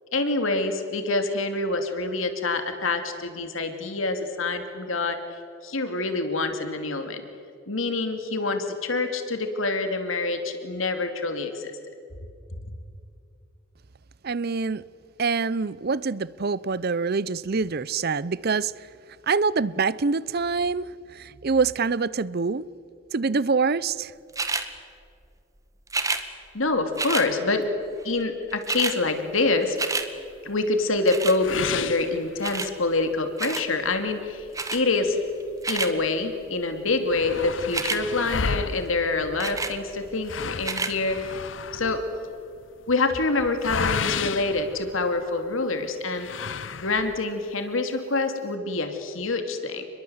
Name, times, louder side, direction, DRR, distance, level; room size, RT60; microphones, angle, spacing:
voice 1, 0.1-5.2 5.6-7.2 7.7-11.7 12.6-12.7 26.5-27.7 28.0-29.8 30.4-35.2 35.7-41.4 41.7-42.0 42.9-46.3 46.7-49.9, left 3 dB, 85° left, 2.6 m, -26 dB
voice 2, 14.2-14.8 15.2-18.7 19.3-20.9 21.1-22.6 23.1-24.1, right 4 dB, 50° right, 0.6 m, -25 dB
sound 1, 24.3-24.7 25.9-26.2 27.0-27.3 28.2-28.3 28.5-29.0 29.4-30.1 31.1-31.4 32.4-32.7 33.4-33.7 34.5-34.8 35.4-35.9 37.6-38.0 39.4-39.8 40.6-40.9 41.6-41.7, right 3 dB, 15° right, 1.8 m, -28 dB
sound 2, 31.4-32.9 33.3-33.4 33.9-34.0 34.7-36.1 36.4-36.5 36.7-45.5 46.1-47.3, left 5 dB, 65° left, 0.8 m, -33 dB
29.5 x 22.0 x 8.0 m
head